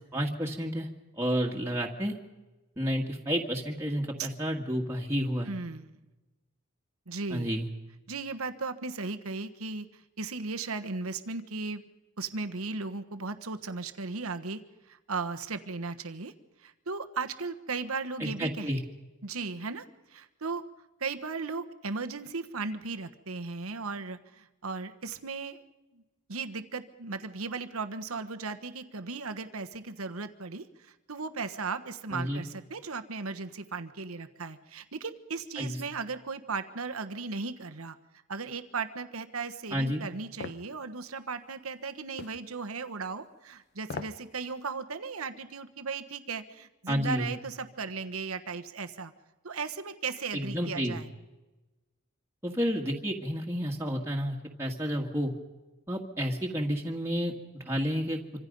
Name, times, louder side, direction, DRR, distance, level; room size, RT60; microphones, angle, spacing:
voice 1, 0.1-0.9 1.2-2.1 2.8-5.5 7.3-7.7 18.2-18.8 32.1-32.4 35.6-35.8 39.7-40.0 46.9-47.3 50.3-51.0 52.4-55.3 55.9-58.2, equal, 15° right, -1 dB, 1.9 m, -30 dB
voice 2, 5.5-6.0 7.1-7.5 8.1-11.8 12.2-14.6 14.9-16.3 16.6-18.7 19.2-19.8 20.1-20.6 21.0-25.6 25.9-26.0 26.3-38.0 38.3-49.1 49.4-51.1, right 4 dB, 80° right, 8 dB, 1.3 m, -36 dB
sound 1, 40.4-40.7 42.2-42.4 43.8-44.2 44.6-44.7, left 3 dB, 50° left, 1.0 m, -39 dB
26.0 x 25.5 x 5.4 m, 1.1 s
head